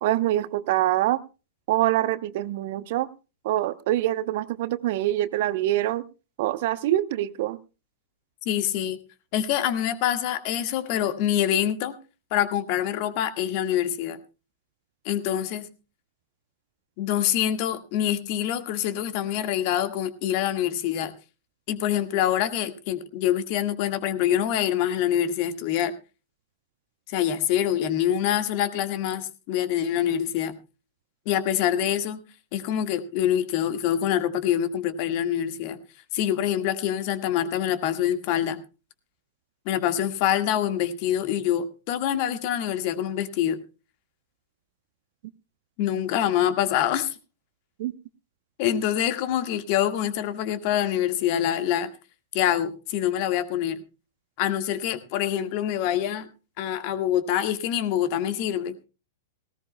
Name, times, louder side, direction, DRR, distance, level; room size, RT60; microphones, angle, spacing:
voice 1, 0.0-1.2 1.7-3.1 3.4-6.0 6.4-7.6 47.8-47.9, right 14 dB, 50° right, 16 dB, 0.8 m, -25 dB
voice 2, 8.4-9.0 9.3-11.9 12.3-14.2 15.0-15.7 17.0-21.1 21.7-25.9 27.1-30.5 31.2-32.2 32.5-35.8 36.1-38.6 39.6-43.6 45.8-47.1 48.6-51.9 52.3-53.8 54.4-56.3 56.6-58.7, left 10 dB, 45° left, 10 dB, 1.6 m, -25 dB
18.5 x 17.5 x 2.2 m, 0.31 s
figure-of-eight pair, 100°, 0 cm